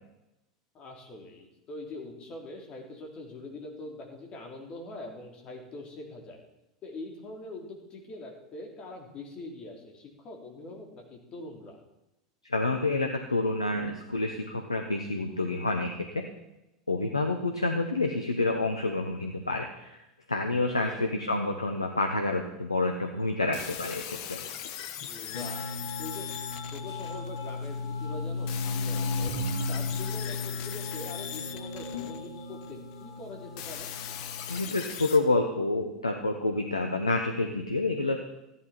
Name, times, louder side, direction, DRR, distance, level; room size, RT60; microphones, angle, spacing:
voice 1, 0.7-6.4 6.8-11.8 20.6-21.0 25.1-26.3 26.7-29.3 29.7-33.9, left 2 dB, 35° left, 1 dB, 3.1 m, -43 dB
voice 2, 12.5-16.2 16.9-20.0 20.3-24.4 34.5-38.2, left 2 dB, 85° left, 4 dB, 1.0 m, -28 dB
sound 1, 23.5-27.8 28.5-32.7 33.6-35.2, left 10 dB, 50° left, 1.1 m, -40 dB
sound 2, 25.3-34.6, left 3 dB, 70° left, 2.7 m, -35 dB
14.5 x 11.0 x 4.3 m, 0.92 s
figure-of-eight pair, 80°, 3 cm